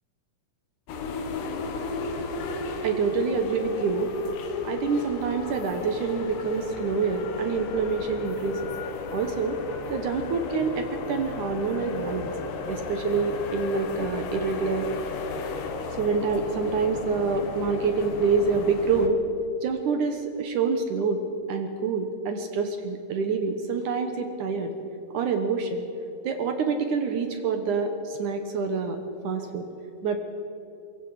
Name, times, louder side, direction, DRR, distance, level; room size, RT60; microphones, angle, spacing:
sound 1, 0.9-19.1, left 4 dB, 85° left, 3.6 m, -34 dB
voice 1, 2.8-4.2 4.6-8.7 9.1-9.6 9.9-12.3 12.7-14.9 16.0-19.2 19.6-21.2 21.5-24.7 25.1-25.8 26.2-29.0 29.2-29.7 30.0-30.2, right 5 dB, 65° right, 6 dB, 2.2 m, -26 dB
23.5 x 22.0 x 4.9 m, 2.9 s
omnidirectional pair, 4.6 m